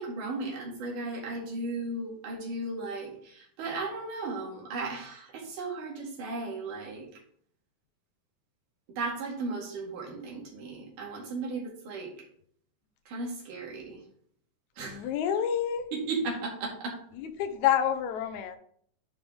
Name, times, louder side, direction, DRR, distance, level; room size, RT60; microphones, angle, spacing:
voice 1, 0.0-7.1 9.0-12.1 13.1-14.0 14.8-15.1 15.9-17.0, right 3 dB, 75° right, -2 dB, 3.5 m, -35 dB
voice 2, 14.8-15.9 17.1-18.6, left 9 dB, 75° left, 8 dB, 1.9 m, -28 dB
11.0 x 4.8 x 3.7 m, 0.65 s
omnidirectional pair, 3.8 m